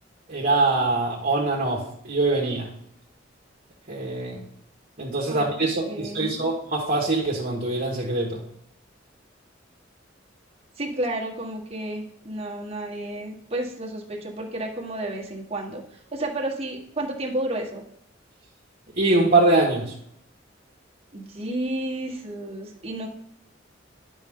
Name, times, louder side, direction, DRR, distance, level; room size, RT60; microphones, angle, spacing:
voice 1, 0.3-2.7 3.9-4.4 5.0-8.4 19.0-19.9, right 2 dB, 50° right, -3 dB, 1.6 m, -23 dB
voice 2, 5.9-6.5 10.8-15.8 16.1-17.8 21.1-23.1, right 1 dB, 30° right, -1 dB, 1.6 m, -31 dB
10.0 x 5.7 x 3.7 m, 0.69 s
head